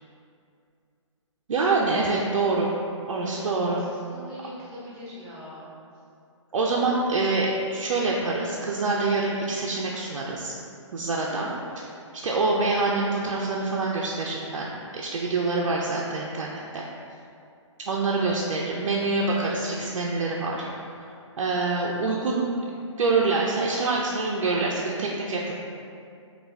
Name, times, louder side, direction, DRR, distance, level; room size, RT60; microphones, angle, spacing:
voice 1, 1.5-2.8 3.1-3.8 6.5-10.5 10.9-11.5 12.1-16.8 17.9-20.7 21.0-22.5 23.0-25.5, right 3 dB, 80° right, -3 dB, 0.4 m, -26 dB
voice 2, 3.6-5.7 11.2-11.5, equal, 20° right, -8 dB, 0.7 m, -42 dB
3.4 x 2.3 x 3.2 m, 2.5 s
hypercardioid pair, 160°, 16 cm